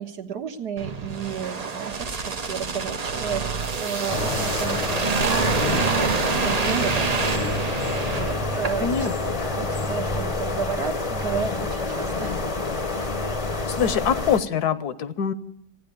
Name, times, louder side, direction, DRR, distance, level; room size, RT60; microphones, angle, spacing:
voice 1, 0.0-12.4 12.9-13.0, right 7 dB, 75° right, 3 dB, 1.7 m, -33 dB
sound 1, 0.8-9.1 9.4-9.6, right 5 dB, 45° right, 0.5 m, -27 dB
sound 2, 4.1-14.4, left 2 dB, 30° left, 0.7 m, -27 dB
voice 2, 8.8-9.6 13.7-15.3, left 7 dB, 70° left, 13 dB, 1.3 m, -25 dB
15.5 x 9.5 x 9.3 m, 0.75 s
omnidirectional pair, 1.8 m